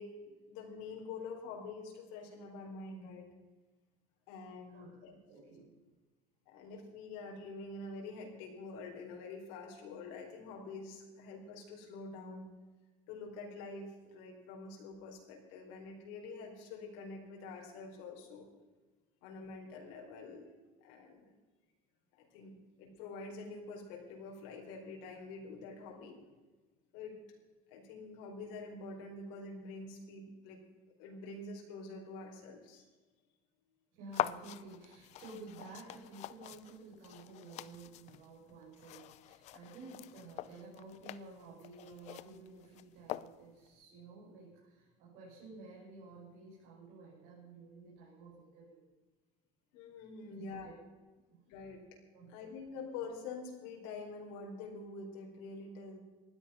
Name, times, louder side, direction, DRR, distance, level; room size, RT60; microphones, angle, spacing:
voice 1, 0.0-3.3 4.3-5.1 6.5-12.5 13.1-18.5 19.2-21.3 22.2-26.2 26.9-27.1 27.7-30.6 31.0-32.8 49.7-50.7 51.5-51.8 52.3-56.0, left 3 dB, 85° left, 0 dB, 4.5 m, -46 dB
voice 2, 4.7-5.0 5.3-5.8 33.9-48.8 50.3-50.7 51.3-51.4 52.1-52.4, right 3 dB, 70° right, -6 dB, 6.8 m, -52 dB
sound 1, 34.1-43.7, left 14 dB, 45° left, 0.6 m, -44 dB
20.0 x 12.5 x 5.7 m, 1.3 s
cardioid pair, 180°, 17 cm